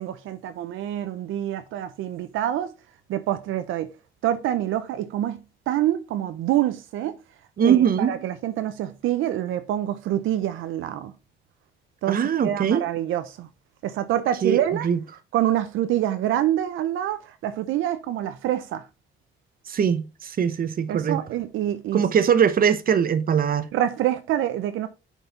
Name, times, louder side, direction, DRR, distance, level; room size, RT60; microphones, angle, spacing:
voice 1, 0.0-2.7 3.1-3.9 4.2-5.4 5.7-7.2 7.6-11.1 12.0-13.5 13.8-14.9 15.3-18.8 20.9-22.0 23.7-24.9, right 12 dB, 85° right, 0.6 m, -26 dB
voice 2, 7.6-8.1 12.1-12.8 14.4-14.6 14.8-15.0 19.7-21.2 21.9-23.7, right 7 dB, 45° right, 0.8 m, -21 dB
6.7 x 4.6 x 4.1 m
cardioid pair, 90°, 20 cm